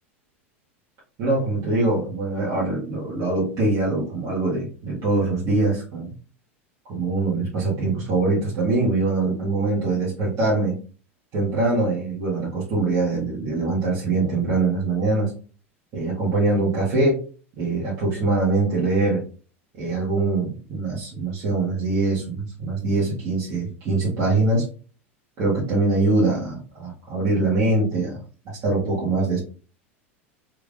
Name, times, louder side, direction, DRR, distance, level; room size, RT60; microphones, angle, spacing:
voice 1, 1.2-6.1 6.9-10.8 11.3-15.3 15.9-17.2 17.6-19.2 19.8-24.7 25.4-29.4, right 3 dB, 50° right, -8 dB, 1.7 m, -23 dB
3.5 x 3.3 x 2.5 m, 0.38 s
hypercardioid pair, 90°, 7 cm